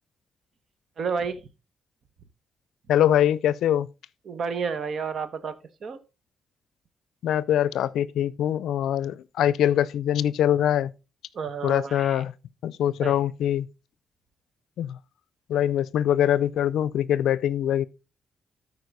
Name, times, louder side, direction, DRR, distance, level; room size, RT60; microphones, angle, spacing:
voice 1, 1.0-1.4 4.3-5.5 5.8-6.0 11.3-12.2 13.0-13.1, right 5 dB, 65° right, 1.2 m, -30 dB
voice 2, 2.9-3.9 7.2-10.9 11.6-12.3 12.6-13.7 14.8-15.0 15.5-17.8, left 11 dB, 85° left, 0.4 m, -23 dB
13.0 x 4.8 x 4.0 m
cardioid pair, 65°, 0 cm